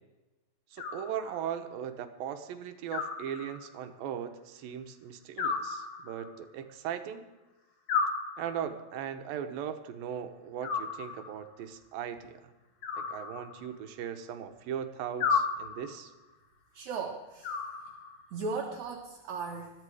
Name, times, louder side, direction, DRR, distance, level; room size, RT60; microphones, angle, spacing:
voice 1, 0.7-7.2 8.4-12.5 13.1-16.1, right 9 dB, 80° right, 8 dB, 2.8 m, -38 dB
Animal, 0.8-1.7 2.9-3.9 5.4-6.5 7.9-8.9 10.6-11.5 12.8-13.9 15.2-16.1 17.4-18.3, left 5 dB, 55° left, 2.2 m, -34 dB
voice 2, 16.7-17.5 18.3-19.7, right 4 dB, 60° right, 0 dB, 2.5 m, -36 dB
21.5 x 13.5 x 4.9 m, 1.1 s
omnidirectional pair, 4.1 m